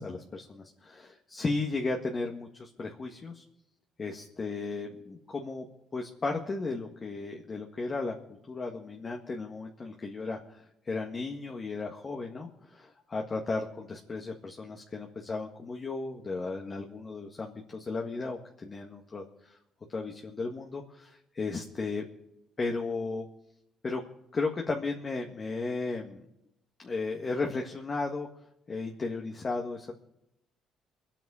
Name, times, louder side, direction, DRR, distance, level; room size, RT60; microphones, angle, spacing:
voice 1, 0.0-3.4 4.0-5.7 5.9-19.6 19.9-22.0 22.6-23.3 23.8-24.0 24.3-26.2 26.8-28.3 28.7-29.9, left 3 dB, 30° left, 1 dB, 1.8 m, -35 dB
24.5 x 9.2 x 5.0 m, 0.84 s
cardioid pair, 110°, 0 cm